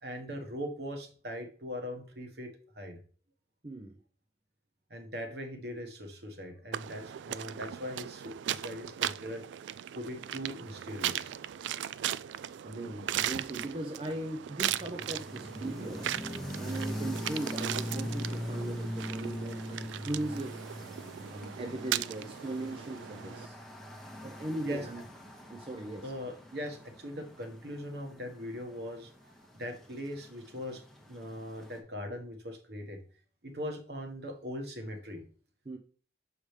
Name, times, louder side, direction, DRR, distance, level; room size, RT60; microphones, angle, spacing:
voice 1, 0.0-2.5 2.7-3.0 4.9-9.4 9.9-11.3 23.6-24.0 24.6-24.8 26.0-29.3 29.6-30.8 31.1-33.0 33.4-35.2, equal, 60° right, 1.3 m, -40 dB
voice 2, 3.6-4.0 12.6-16.2 16.6-20.6 21.3-23.6 24.2-25.0 25.5-26.1 35.7-35.8, right 1 dB, 30° right, 0.6 m, -38 dB
sound 1, 6.7-23.5, right 11 dB, 80° right, 0.3 m, -38 dB
sound 2, 14.6-31.8, equal, ahead, 0.9 m, -42 dB
7.0 x 4.9 x 3.2 m
head